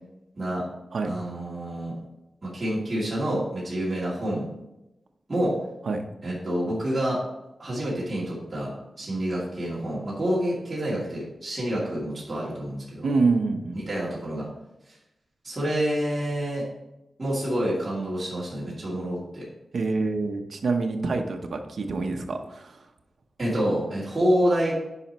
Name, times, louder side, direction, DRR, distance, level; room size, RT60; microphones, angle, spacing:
voice 1, 1.0-1.9 2.4-4.4 5.3-5.6 6.2-7.2 7.6-8.7 9.0-13.1 13.7-14.5 15.4-16.6 17.2-19.4 23.4-24.7, equal, 25° right, -8 dB, 2.6 m, -27 dB
voice 2, 13.0-13.8 19.7-22.7, right 3 dB, 70° right, 4 dB, 0.8 m, -26 dB
9.8 x 5.0 x 3.0 m, 0.90 s
wide cardioid pair, 135°, 0 cm